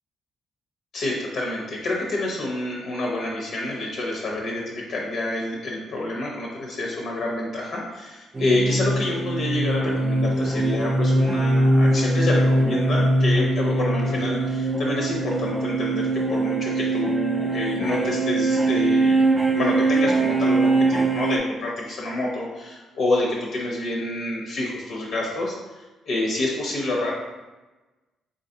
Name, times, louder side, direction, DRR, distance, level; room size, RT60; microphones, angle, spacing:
voice 1, 0.9-19.3 19.5-27.1, left 2 dB, 65° left, -2 dB, 0.6 m, -28 dB
sound 1, 8.3-21.4, right 2 dB, 20° right, 0.3 m, -22 dB
3.7 x 2.6 x 2.6 m, 1.2 s
cardioid pair, 90°, 0 cm